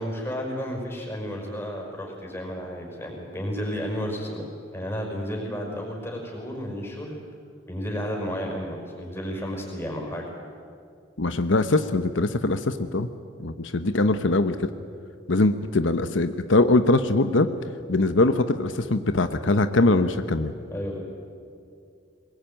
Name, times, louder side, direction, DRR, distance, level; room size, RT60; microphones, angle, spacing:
voice 1, 0.0-4.4 4.7-7.2 7.7-10.3 19.9-20.0 20.7-21.0, equal, 15° left, 0 dB, 5.4 m, -32 dB
voice 2, 11.2-13.1 13.4-14.7 15.3-17.5 17.9-20.5, left 2 dB, 85° left, 10 dB, 1.0 m, -22 dB
22.5 x 21.0 x 9.0 m, 2.3 s
head